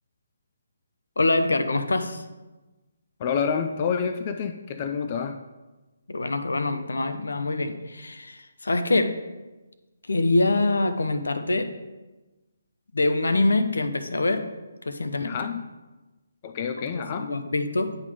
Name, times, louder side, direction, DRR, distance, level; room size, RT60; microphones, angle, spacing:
voice 1, 1.2-2.2 6.1-9.2 10.1-11.7 12.9-14.5 14.8-15.4 16.8-18.0, left 2 dB, 80° left, 9 dB, 0.7 m, -25 dB
voice 2, 3.2-5.4 15.2-15.6 16.4-17.3, left 6 dB, 35° left, 8 dB, 0.4 m, -28 dB
9.1 x 3.8 x 5.0 m, 1.1 s
figure-of-eight pair, 150°, 0 cm